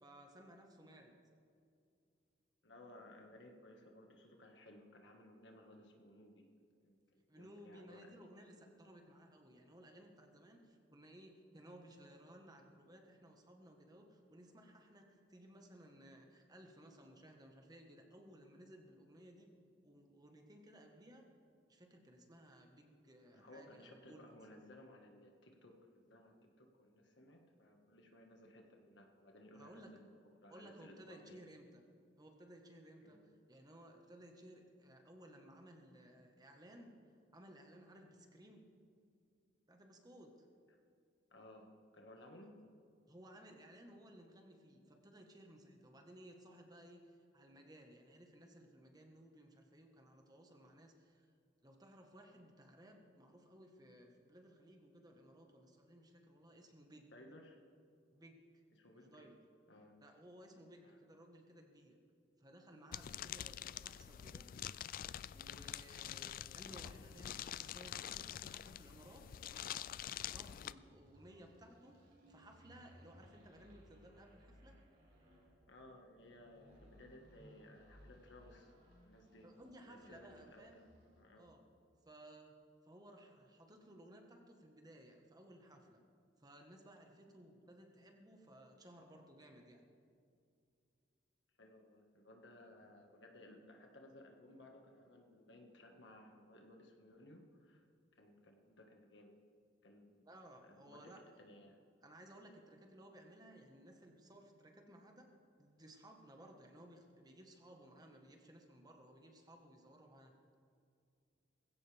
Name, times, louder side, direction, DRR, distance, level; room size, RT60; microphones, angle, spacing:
voice 1, 0.0-1.1 7.3-19.5 19.8-21.3 21.7-24.3 29.5-29.9 30.5-31.8 32.2-33.2 33.5-36.9 37.3-38.7 39.7-40.5 43.1-51.3 51.6-57.1 58.1-58.4 58.9-59.4 60.0-62.0 62.4-64.6 65.3-69.9 70.2-72.0 72.3-74.8 79.4-80.8 81.4-81.6 82.0-82.5 82.8-86.0 86.4-89.9 100.2-101.2 102.0-105.3 105.6-110.3, right 1 dB, 20° right, 2 dB, 1.5 m, -59 dB
voice 2, 2.6-6.5 6.8-8.2 23.3-30.2 30.4-31.4 33.0-33.2 40.7-40.8 41.3-42.6 57.1-57.6 58.7-59.3 59.7-60.0 60.8-61.0 75.7-78.7 79.0-79.5 79.9-80.9 81.2-81.5 91.6-97.8 98.1-99.4 99.8-100.3 100.6-101.8, left 1 dB, 70° left, 2 dB, 1.8 m, -59 dB
sound 1, 62.9-70.7, left 11 dB, 50° left, 0.3 m, -46 dB
sound 2, 70.6-81.4, equal, 55° right, 4.5 m, -64 dB
19.5 x 16.0 x 3.5 m, 2.4 s
head